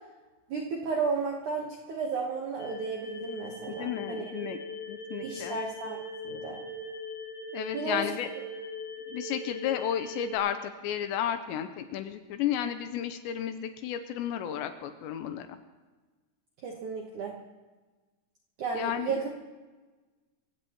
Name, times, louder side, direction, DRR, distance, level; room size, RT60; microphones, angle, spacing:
voice 1, 0.5-4.2 5.2-6.6 7.7-8.1 16.6-17.4 18.6-19.3, right 5 dB, 75° right, 0 dB, 1.8 m, -33 dB
sound 1, 2.6-10.4, left 1 dB, 30° left, 5.8 m, -40 dB
voice 2, 3.7-4.6 4.9-5.6 7.5-8.3 9.1-15.6 18.7-19.1, left 10 dB, 80° left, 8 dB, 2.8 m, -33 dB
26.5 x 16.0 x 3.0 m, 1.3 s
omnidirectional pair, 5.5 m